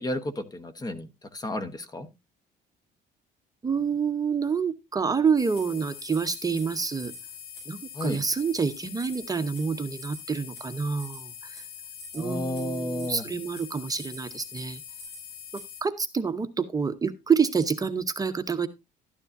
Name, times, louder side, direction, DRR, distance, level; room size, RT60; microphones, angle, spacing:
voice 1, 0.0-2.1 7.9-8.2 12.1-13.2, left 1 dB, 20° left, 12 dB, 1.1 m, -32 dB
voice 2, 3.6-7.1 7.7-11.7 12.1-14.8 15.8-18.7, right 5 dB, 20° right, 9 dB, 0.9 m, -27 dB
sound 1, 5.4-15.8, left 6 dB, 80° left, 5.9 m, -43 dB
12.5 x 9.7 x 2.6 m, 0.22 s
cardioid pair, 110°, 17 cm